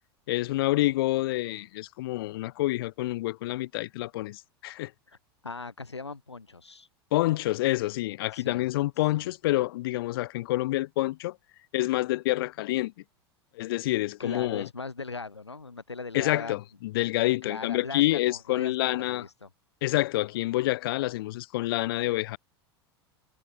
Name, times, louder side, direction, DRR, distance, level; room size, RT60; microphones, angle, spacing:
voice 1, 0.3-4.9 7.1-11.4 11.7-12.9 13.6-14.7 16.1-19.3 19.8-22.4, left 17 dB, 60° left, 4.1 m, -27 dB
voice 2, 5.4-6.9 8.3-8.6 9.1-9.3 14.2-16.6 17.4-19.5, left 4 dB, 85° left, 5.3 m, -39 dB
figure-of-eight pair, 85°, 14 cm